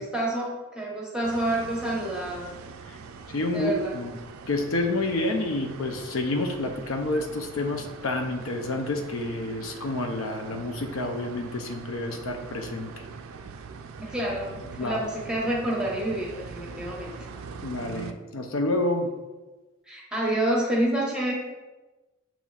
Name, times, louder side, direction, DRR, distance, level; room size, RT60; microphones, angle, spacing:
voice 1, 0.0-2.5 3.5-3.9 14.0-17.1 19.9-21.4, right 1 dB, 5° right, -4 dB, 1.0 m, -28 dB
sound 1, 1.2-18.1, right 5 dB, 80° right, 0.3 m, -42 dB
voice 2, 3.3-4.2 4.5-12.9 14.8-15.0 17.6-19.1, left 2 dB, 75° left, 4 dB, 0.5 m, -29 dB
6.9 x 3.0 x 2.4 m, 1.2 s
head